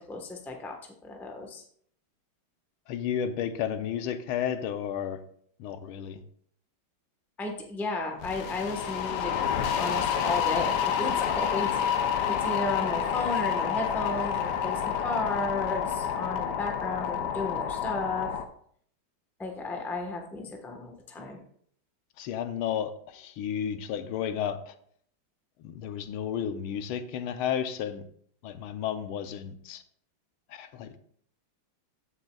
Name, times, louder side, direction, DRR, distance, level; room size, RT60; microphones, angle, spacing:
voice 1, 0.1-0.7 1.0-1.6 7.4-9.3 9.8-11.8 12.3-18.3 19.4-21.4, left 2 dB, ahead, 2 dB, 0.6 m, -34 dB
voice 2, 2.9-5.2 5.6-6.2 22.2-24.7 25.6-28.0 28.4-29.8 30.5-31.0, left 9 dB, 85° left, 10 dB, 1.6 m, -32 dB
sound 1, 8.2-18.4, left 8 dB, 65° left, 1.1 m, -29 dB
14.5 x 6.6 x 2.3 m, 0.62 s
omnidirectional pair, 2.3 m